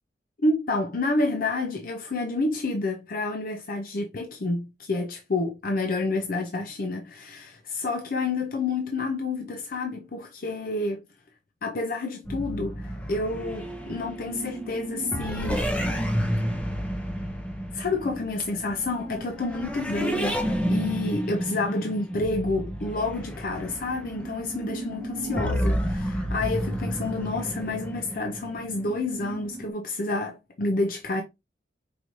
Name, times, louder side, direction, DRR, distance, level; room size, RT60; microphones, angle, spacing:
voice 1, 0.4-11.0 11.6-15.7 17.7-31.2, left 2 dB, 55° left, 0.5 m, -29 dB
goldfish racing (water), 12.3-29.7, equal, 10° left, 0.7 m, -31 dB
4.8 x 2.6 x 3.0 m
head